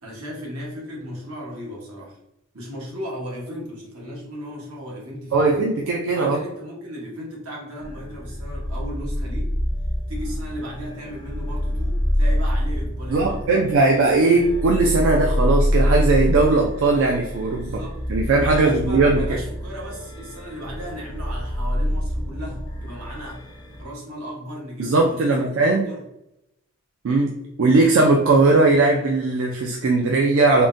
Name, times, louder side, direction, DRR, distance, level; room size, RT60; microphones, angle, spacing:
voice 1, 0.0-2.2 2.5-5.7 6.1-9.5 10.1-13.6 17.5-18.0 18.4-23.5 23.8-26.0, equal, 85° right, -3 dB, 1.2 m, -36 dB
voice 2, 5.3-6.4 13.1-17.8 18.1-19.3 24.8-25.9 27.0-30.7, right 3 dB, 65° right, 1 dB, 0.4 m, -19 dB
sound 1, 7.8-23.8, equal, 20° left, 0.4 m, -26 dB
3.7 x 2.1 x 2.6 m, 0.84 s
head